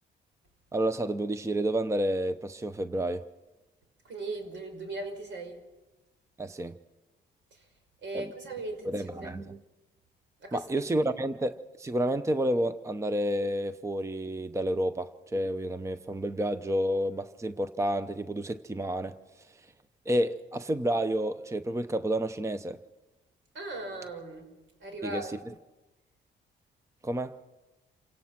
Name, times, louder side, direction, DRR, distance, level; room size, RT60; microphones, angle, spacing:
voice 1, 0.7-3.2 6.4-6.7 8.1-8.2 8.8-9.6 10.5-19.1 20.1-22.8 25.0-25.2 27.0-27.4, right 1 dB, 15° right, 0.8 m, -30 dB
voice 2, 4.0-5.6 7.5-7.7 8.0-9.3 10.4-10.7 23.5-24.5 24.8-25.3, right 2 dB, 75° right, 5.2 m, -38 dB
28.0 x 17.0 x 6.0 m
cardioid pair, 90°, 20 cm